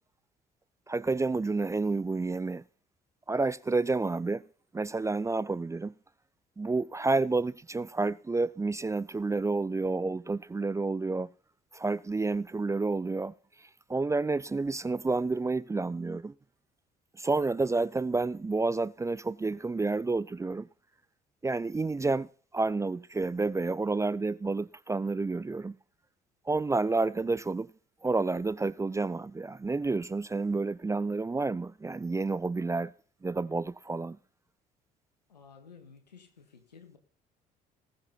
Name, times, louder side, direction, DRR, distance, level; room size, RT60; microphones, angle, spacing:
voice 1, 0.9-2.6 3.3-4.4 4.7-5.9 6.6-11.3 11.7-16.3 17.1-20.7 21.4-25.8 26.5-27.7 28.0-32.9 33.2-34.2, right 3 dB, 15° right, 0.5 m, -30 dB
voice 2, 35.3-37.0, left 6 dB, 85° left, 1.8 m, -53 dB
19.5 x 7.3 x 4.2 m
figure-of-eight pair, 50°, 21 cm